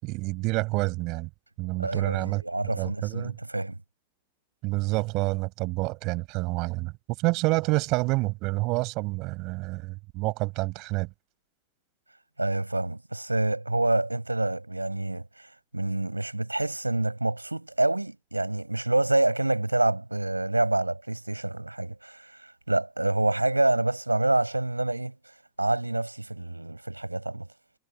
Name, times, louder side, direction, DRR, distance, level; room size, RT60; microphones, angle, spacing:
voice 1, 0.0-1.3 1.6-2.4 2.8-3.4 4.6-11.1, right 24 dB, 40° right, 6.0 m, -28 dB
voice 2, 1.8-3.8 12.4-25.2 25.6-27.5, right 2 dB, 85° right, 6.4 m, -27 dB
figure-of-eight pair, 90°, 0 cm